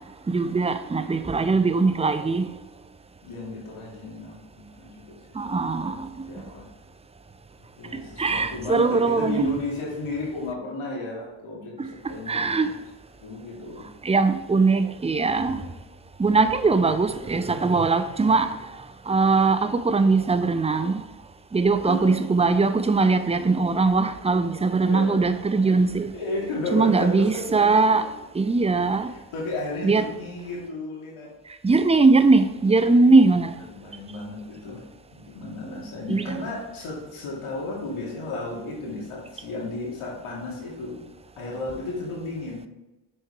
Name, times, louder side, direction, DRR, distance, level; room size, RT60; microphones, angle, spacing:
voice 1, 0.3-2.4 5.4-6.0 8.2-9.5 12.3-12.7 14.0-15.6 16.2-18.5 19.1-21.0 21.5-26.1 26.7-28.0 28.3-29.1 29.8-30.0 31.6-33.5 36.1-36.4, right 3 dB, 15° right, 0.5 m, -20 dB
voice 2, 1.2-1.6 3.2-5.5 5.8-6.0 6.3-6.7 7.8-12.8 13.2-13.9 15.4-15.7 21.9-22.1 24.8-25.2 26.1-27.7 29.1-31.3 33.7-34.8 35.1-41.0 41.3-42.7, left 2 dB, 75° left, 2.4 m, -33 dB
6.4 x 4.5 x 4.6 m
supercardioid pair, 50°, 50 cm